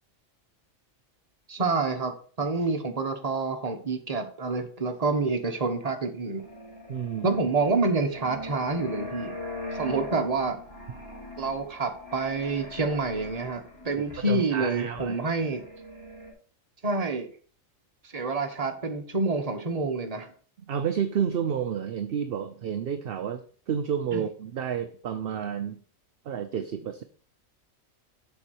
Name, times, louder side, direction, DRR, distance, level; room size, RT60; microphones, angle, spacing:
voice 1, 1.5-2.1 2.4-6.4 7.2-9.3 9.7-10.6 11.4-15.6 16.8-17.3 18.1-20.3 24.1-24.2, right 3 dB, 30° right, 5 dB, 1.1 m, -28 dB
sound 1, 6.4-16.3, left 2 dB, 15° left, 4.4 m, -41 dB
voice 2, 6.9-7.4 14.0-15.2 20.7-25.8 26.3-27.0, right 8 dB, 55° right, 8 dB, 0.7 m, -30 dB
7.1 x 4.6 x 6.4 m, 0.43 s
omnidirectional pair, 1.4 m